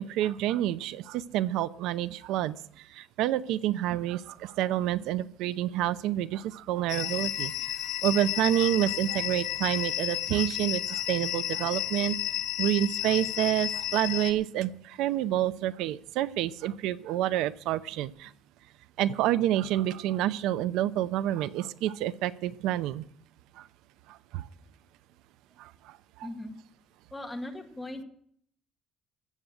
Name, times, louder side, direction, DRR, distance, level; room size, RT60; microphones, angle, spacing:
voice 1, 0.0-2.6 2.9-7.7 8.0-12.2 12.6-18.3 19.0-23.1 23.6-23.7 24.1-24.5 25.6-26.0, right 13 dB, 80° right, 16 dB, 0.5 m, -28 dB
sound 1, 6.9-14.3, left 13 dB, 80° left, 1.5 m, -32 dB
voice 2, 26.2-26.6 27.1-28.0, left 1 dB, 5° left, 2 dB, 1.8 m, -38 dB
14.5 x 8.0 x 7.8 m, 0.65 s
cardioid pair, 165°, 0 cm